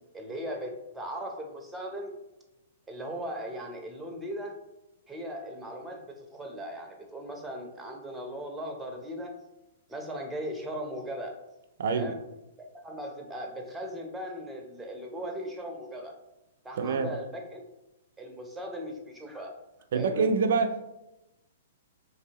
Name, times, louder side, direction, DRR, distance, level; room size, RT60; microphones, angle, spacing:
voice 1, 0.1-2.1 2.9-4.6 5.1-9.3 9.9-11.4 11.9-12.2 12.8-16.1 16.6-17.6 18.2-19.5 19.9-20.3, equal, 10° right, 1 dB, 0.5 m, -38 dB
voice 2, 16.8-17.1 19.9-20.9, right 4 dB, 70° right, 8 dB, 0.4 m, -26 dB
3.0 x 2.6 x 2.8 m, 0.95 s
hypercardioid pair, 135°, 0 cm